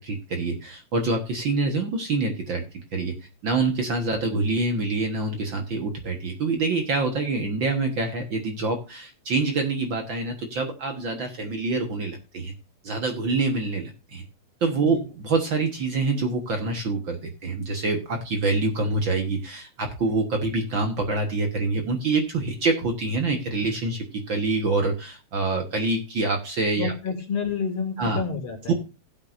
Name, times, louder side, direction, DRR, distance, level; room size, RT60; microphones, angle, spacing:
voice 1, 0.0-2.6 2.9-3.2 3.4-12.5 12.8-14.2 14.6-26.9 28.0-28.2 28.7-28.8, right 3 dB, 50° right, 3 dB, 1.8 m, -26 dB
voice 2, 26.8-28.7, left 5 dB, 50° left, 3 dB, 3.2 m, -29 dB
16.5 x 8.1 x 2.6 m, 0.29 s
omnidirectional pair, 3.3 m